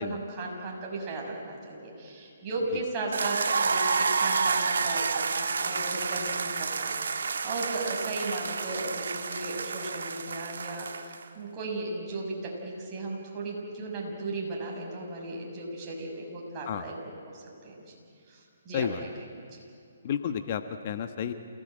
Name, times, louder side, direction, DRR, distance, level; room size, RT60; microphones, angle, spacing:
voice 1, 0.0-17.8 18.3-18.9 19.4-19.6, right 2 dB, 25° right, -2 dB, 6.6 m, -36 dB
sound 1, 3.1-11.2, right 5 dB, 70° right, 1.5 m, -29 dB
voice 2, 20.0-21.3, left 8 dB, 45° left, 8 dB, 1.2 m, -31 dB
28.5 x 17.5 x 8.9 m, 2.3 s
hypercardioid pair, 140°, 0 cm